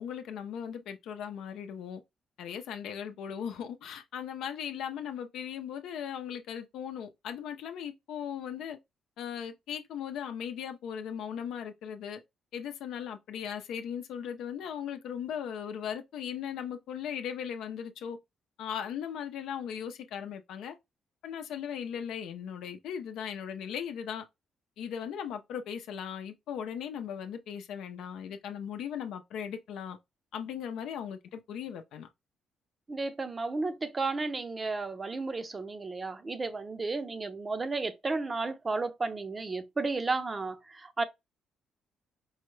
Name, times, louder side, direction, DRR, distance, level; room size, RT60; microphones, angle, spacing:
voice 1, 0.0-2.0 2.4-8.8 9.2-12.2 12.5-18.2 18.6-20.7 21.2-24.2 24.8-30.0 30.3-32.1, left 8 dB, 80° left, 0.6 m, -38 dB
voice 2, 32.9-41.0, right 3 dB, 30° right, 0.6 m, -33 dB
4.7 x 2.2 x 3.1 m
cardioid pair, 90°, 0 cm